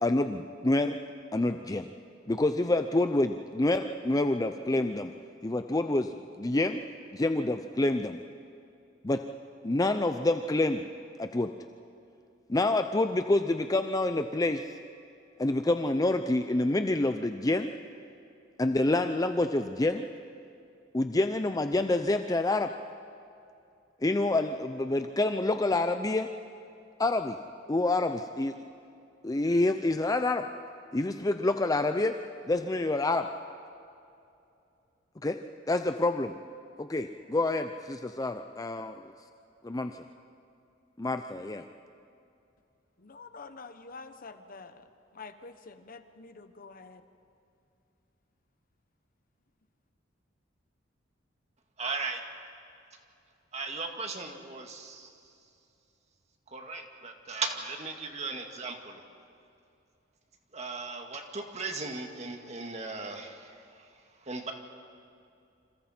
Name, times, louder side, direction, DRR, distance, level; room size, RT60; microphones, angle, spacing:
voice 1, 0.0-1.0 1.3-1.9 2.3-5.1 5.4-6.1 6.4-6.8 7.1-8.2 9.0-9.2 9.6-10.8 11.2-11.5 12.5-14.7 15.4-17.7 18.6-20.1 20.9-22.7 24.0-26.3 27.0-27.4 27.7-28.5 29.2-30.4 30.9-32.1 32.5-33.3 35.2-35.4 35.7-36.3 36.8-39.0 39.6-40.0 41.0-41.6, left 2 dB, 20° left, 7 dB, 0.5 m, -27 dB
voice 2, 43.0-44.8 45.1-47.0, left 4 dB, 50° left, 9 dB, 1.0 m, -47 dB
voice 3, 51.8-52.2 53.5-55.1 56.5-59.0 60.5-63.9 64.3-64.5, right 4 dB, 35° right, 3 dB, 2.0 m, -37 dB
28.0 x 27.0 x 4.4 m, 2.6 s
head